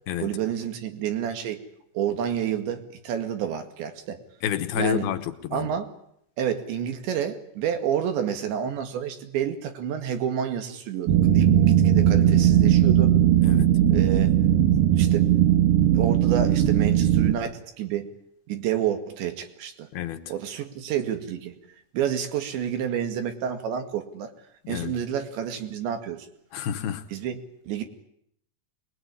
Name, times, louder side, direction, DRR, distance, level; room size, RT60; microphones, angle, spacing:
voice 1, 0.2-1.6 1.9-4.2 4.8-5.1 5.5-5.9 6.4-13.1 13.9-14.4 15.0-15.3 16.0-18.1 18.5-19.9 20.3-21.6 21.9-24.3 24.7-26.3 27.1-27.8, right 9 dB, 90° right, 4.4 m, -29 dB
voice 2, 4.4-5.7 13.4-13.7 19.9-20.2 24.7-24.9 26.5-27.0, left 10 dB, 70° left, 2.8 m, -29 dB
sound 1, 11.1-17.3, right 10 dB, 65° right, 2.6 m, -19 dB
24.5 x 21.0 x 9.8 m
omnidirectional pair, 5.0 m